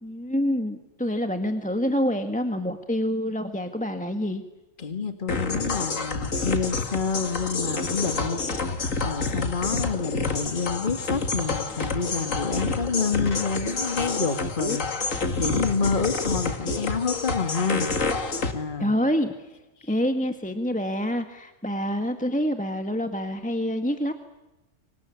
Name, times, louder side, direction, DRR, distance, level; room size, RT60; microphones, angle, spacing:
voice 1, 0.0-4.4 18.8-19.5 19.9-24.1, equal, 5° left, 6 dB, 1.6 m, -27 dB
voice 2, 4.8-8.4 9.0-17.9 18.5-18.9 19.8-19.9, left 5 dB, 40° left, 7 dB, 2.2 m, -28 dB
sound 1, 5.3-18.5, left 3 dB, 80° left, 2.5 m, -28 dB
28.5 x 24.5 x 8.5 m, 1.0 s
omnidirectional pair, 1.3 m